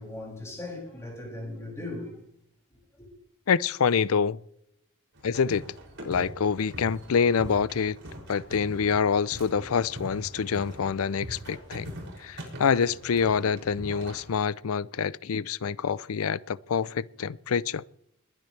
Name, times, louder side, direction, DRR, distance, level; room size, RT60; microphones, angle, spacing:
voice 1, 0.0-2.2 2.7-3.1, left 2 dB, 15° left, 6.5 m, -38 dB
voice 2, 3.5-4.4 5.2-5.6 6.0-8.0 8.3-11.9 12.2-17.8, left 6 dB, 80° left, 0.5 m, -26 dB
sound 1, 5.1-14.3, equal, 60° right, 6.5 m, -42 dB
21.0 x 12.0 x 3.3 m
head